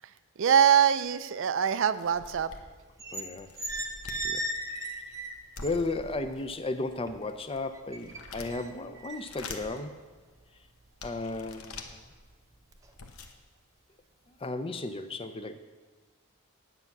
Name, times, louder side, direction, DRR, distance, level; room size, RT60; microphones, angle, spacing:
voice 1, 0.4-2.5, right 8 dB, 60° right, 13 dB, 0.4 m, -23 dB
sound 1, 1.0-1.1 1.6-1.7 1.9-2.9 3.4-4.3 5.6-6.6 7.2-8.7 9.1-9.8 10.4-10.5 11.0-11.9 12.6-12.7 12.9-13.3, left 3 dB, 75° left, 1.0 m, -45 dB
sound 2, 2.8-3.3 3.6-6.1 6.5-7.4 7.7-10.9 11.3-11.5 11.9-12.3 12.7-13.0, right 1 dB, 15° right, 0.8 m, -37 dB
voice 2, 3.1-3.5 4.2-4.4 4.7-4.8 5.6-10.0 11.0-11.9 14.4-15.6, left 2 dB, 25° left, 9 dB, 0.5 m, -34 dB
9.9 x 8.0 x 5.9 m, 1.4 s
head